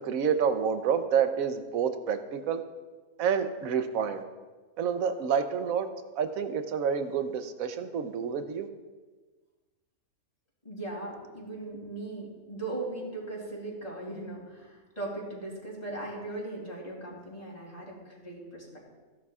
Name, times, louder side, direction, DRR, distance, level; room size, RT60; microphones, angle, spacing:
voice 1, 0.0-2.6 3.2-4.2 4.8-5.9 6.2-8.7, right 7 dB, 70° right, 8 dB, 1.2 m, -28 dB
voice 2, 10.6-18.8, right 2 dB, 25° left, -3 dB, 3.2 m, -38 dB
16.0 x 11.0 x 2.4 m, 1.3 s
omnidirectional pair, 1.6 m